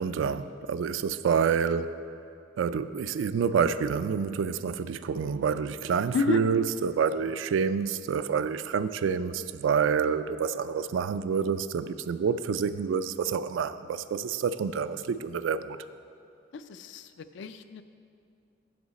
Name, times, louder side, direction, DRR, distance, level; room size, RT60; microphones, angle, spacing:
voice 1, 0.0-1.9 2.6-15.8, right 6 dB, 80° right, 13 dB, 0.3 m, -28 dB
voice 2, 16.5-17.0 17.3-17.8, left 4 dB, 70° left, 11 dB, 0.4 m, -30 dB
10.0 x 6.4 x 4.1 m, 2.4 s
head